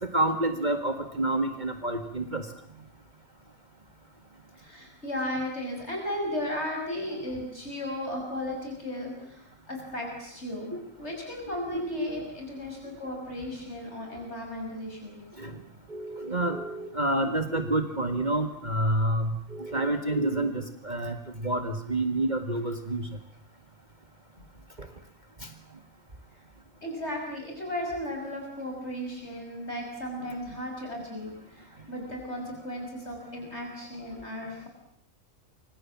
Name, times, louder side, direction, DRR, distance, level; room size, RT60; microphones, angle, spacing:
voice 1, 0.0-2.5 10.7-10.8 11.7-12.1 15.4-15.6 15.9-23.1 25.4-25.5, right 1 dB, 35° right, 6 dB, 2.0 m, -28 dB
voice 2, 4.5-15.2 26.8-34.7, left 1 dB, 55° left, 1 dB, 6.5 m, -35 dB
29.0 x 25.5 x 7.4 m, 0.70 s
omnidirectional pair, 1.3 m